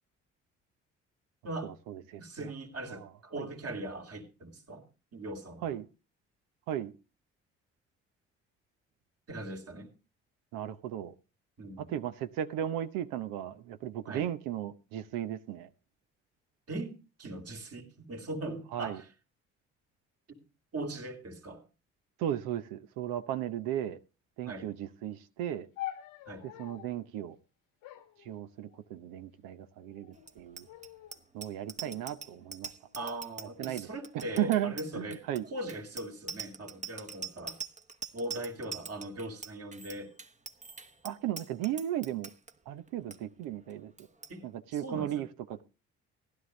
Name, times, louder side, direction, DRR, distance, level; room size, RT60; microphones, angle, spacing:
voice 1, 1.6-2.5 2.9-3.1 3.4-3.5 5.6-5.9 6.7-6.9 10.5-11.1 11.8-15.7 18.7-19.0 22.2-24.0 24.4-25.7 26.6-27.4 28.2-30.7 31.3-32.7 33.6-33.9 34.1-35.4 41.0-42.3 42.7-43.9 44.4-45.6, right 11 dB, 75° right, 0.8 m, -35 dB
voice 2, 2.2-4.8 5.1-5.8 9.3-9.9 11.6-11.9 14.1-14.3 16.7-19.1 20.3-20.4 20.7-21.6 24.4-24.7 26.3-26.5 31.8-32.0 32.9-37.6 38.1-40.1 44.3-45.3, right 1 dB, 45° right, 2.8 m, -40 dB
sound 1, 25.8-27.0 27.8-29.0 29.8-30.3 30.7-31.2 31.9-33.2 34.0-34.4, left 14 dB, 75° left, 1.3 m, -46 dB
Bicycle bell, 30.2-42.5 42.9-43.2 43.4-43.7 44.0-44.3, right 5 dB, 20° right, 1.0 m, -43 dB
16.0 x 11.5 x 3.1 m
hypercardioid pair, 50°, 34 cm